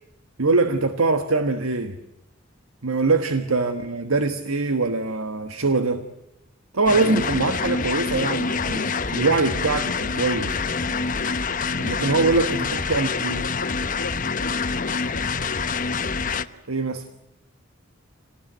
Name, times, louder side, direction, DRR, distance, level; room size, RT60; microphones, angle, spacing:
voice 1, 0.4-2.0 2.8-6.0 6.7-10.6 11.8-13.4 16.7-17.1, right 3 dB, 90° right, 1.5 m, -23 dB
sound 1, 6.9-16.5, left 4 dB, 40° left, 1.0 m, -26 dB
Brass instrument, 8.6-14.4, right 1 dB, 30° right, 3.4 m, -47 dB
voice 2, 12.9-16.1, left 2 dB, 70° left, 1.9 m, -40 dB
28.5 x 19.0 x 9.2 m
head